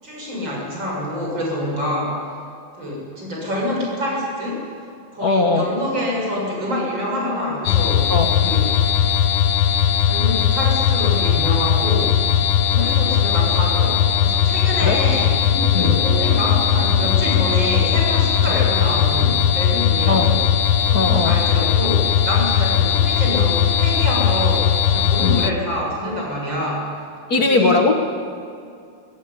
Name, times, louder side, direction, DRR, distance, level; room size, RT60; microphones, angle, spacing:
voice 1, 0.0-2.2 2.8-4.6 5.1-8.1 8.4-8.8 10.0-12.2 12.7-15.3 15.7-20.4 20.9-26.9 27.3-27.8, left 1 dB, 65° right, -2 dB, 7.8 m, -26 dB
voice 2, 5.2-5.7 8.1-8.5 14.8-15.0 15.7-16.0 20.1-20.3 20.9-21.4 25.2-25.4 27.3-28.0, left 3 dB, 50° left, 4 dB, 1.9 m, -19 dB
sound 1, 7.6-25.5, left 8 dB, 85° left, 1.6 m, -18 dB
sound 2, 15.5-18.7, left 1 dB, 5° left, 1.8 m, -30 dB
21.0 x 18.5 x 9.9 m, 2.4 s
omnidirectional pair, 2.2 m